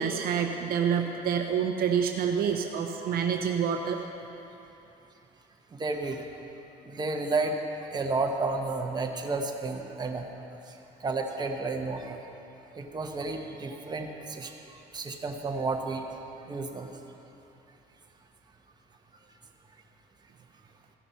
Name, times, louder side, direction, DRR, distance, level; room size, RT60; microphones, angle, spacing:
voice 1, 0.0-4.0, right 7 dB, 65° right, 4 dB, 0.7 m, -27 dB
voice 2, 5.7-6.3 6.8-10.3 11.0-12.2 12.7-16.1 16.5-16.9, right 3 dB, 25° right, 2 dB, 1.0 m, -32 dB
15.0 x 5.9 x 5.6 m, 2.9 s
cardioid pair, 110°, 17 cm